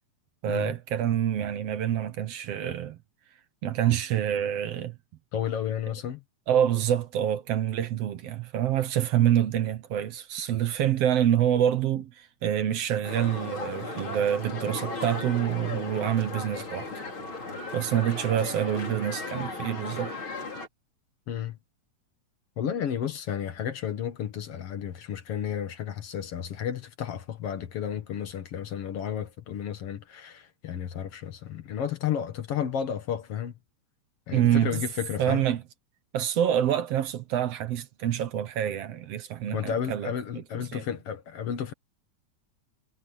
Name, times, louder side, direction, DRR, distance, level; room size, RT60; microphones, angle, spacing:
voice 1, 0.4-3.0 3.6-5.0 6.5-16.9 17.7-20.1 34.3-34.8 35.2-35.6 36.1-40.1 40.7-40.8, right 10 dB, 65° right, 1.9 m, -26 dB
voice 2, 5.3-6.2 21.3-21.6 22.6-33.5 34.3-35.4 39.5-41.7, left 9 dB, 60° left, 2.1 m, -32 dB
sound 1, 13.0-20.7, left 3 dB, 40° left, 5.5 m, -36 dB
omnidirectional pair, 3.4 m